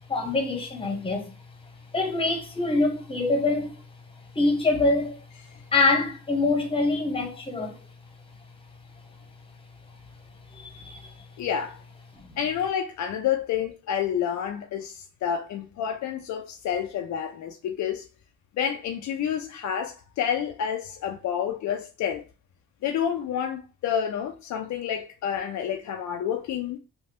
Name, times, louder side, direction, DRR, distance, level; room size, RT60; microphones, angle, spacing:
voice 1, 0.1-1.3 1.9-3.7 4.3-5.2 5.7-7.8 10.5-11.1 12.1-12.3, left 3 dB, 20° left, 1.0 m, -25 dB
voice 2, 11.4-11.8 12.4-18.0 18.6-22.2 22.8-26.8, left 8 dB, 70° left, 0.5 m, -29 dB
3.2 x 2.3 x 2.8 m
cardioid pair, 90°, 30 cm